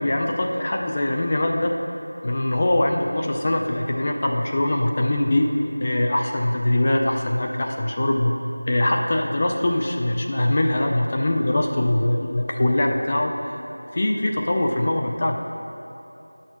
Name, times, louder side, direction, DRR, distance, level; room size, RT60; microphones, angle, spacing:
voice 1, 0.0-1.7 2.2-5.5 5.8-8.4 8.7-13.6 13.9-15.4, left 1 dB, 20° left, 1 dB, 0.3 m, -22 dB
9.1 x 6.4 x 5.6 m, 2.8 s
figure-of-eight pair, 180°, 0 cm